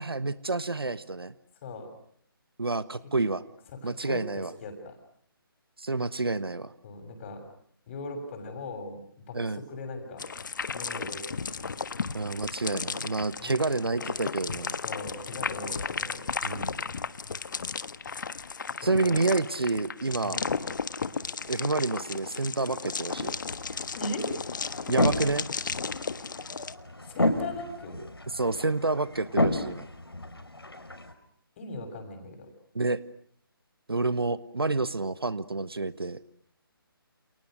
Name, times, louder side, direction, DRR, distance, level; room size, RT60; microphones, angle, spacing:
voice 1, 0.0-1.3 2.6-3.4 3.8-4.5 5.8-6.7 9.3-9.6 12.1-14.8 16.4-16.7 18.8-20.4 21.5-23.3 24.9-25.5 28.3-29.9 32.7-33.0 33.9-36.2, right 3 dB, 75° right, 15 dB, 1.4 m, -29 dB
voice 2, 3.8-5.0 6.8-7.4 7.9-9.0 9.3-10.3 10.7-11.6 13.4-13.9 14.8-16.2 18.8-19.2 20.2-20.5 24.0-24.3 27.1-28.0 31.6-32.5, left 2 dB, 30° left, 7 dB, 7.0 m, -39 dB
sound 1, 10.2-26.7, left 5 dB, 55° left, 1.5 m, -34 dB
sound 2, 23.1-31.1, left 1 dB, 80° left, 5.6 m, -32 dB
30.0 x 29.5 x 6.6 m, 0.66 s
figure-of-eight pair, 145°, 13 cm